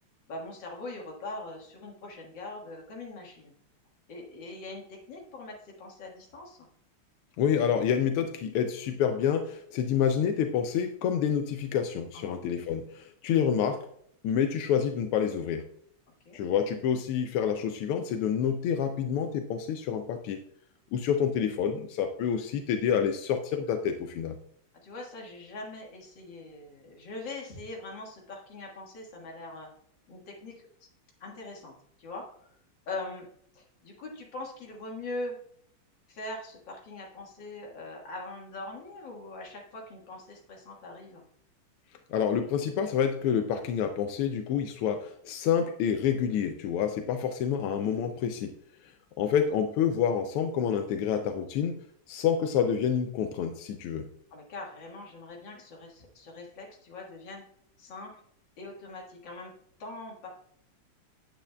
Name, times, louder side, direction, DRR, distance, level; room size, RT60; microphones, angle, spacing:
voice 1, 0.3-3.5 4.1-6.6 12.1-12.4 16.3-16.4 24.7-29.7 30.1-30.9 31.2-32.5 32.9-33.3 33.5-35.4 36.1-41.3 54.3-57.4 57.8-58.2 58.6-60.3, left 2 dB, 60° left, -1 dB, 2.3 m, -42 dB
voice 2, 7.4-13.8 14.2-15.6 16.3-20.4 20.9-24.4 42.1-48.5 48.8-51.8 52.1-54.1, left 8 dB, 85° left, 6 dB, 1.5 m, -28 dB
8.8 x 8.3 x 2.3 m, 0.68 s
omnidirectional pair, 2.4 m